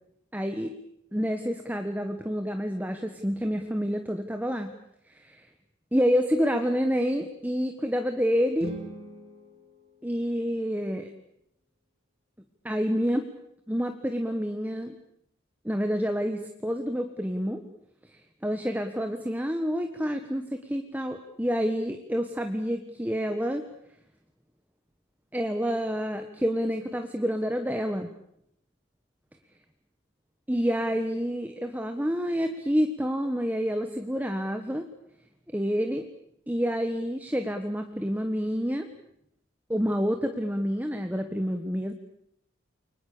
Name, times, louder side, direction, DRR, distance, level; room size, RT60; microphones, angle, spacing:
voice 1, 0.3-0.7 1.1-4.7 5.1-5.4 5.9-8.8 10.0-11.1 12.6-13.3 13.7-14.9 15.6-17.6 18.4-23.6 25.3-28.1 30.5-34.9 35.5-36.1 36.5-38.9 39.7-41.9, equal, 10° right, 6 dB, 1.5 m, -28 dB
sound 1, 8.5-10.7, right 1 dB, 30° right, 3.1 m, -42 dB
30.0 x 24.0 x 6.9 m, 0.76 s
head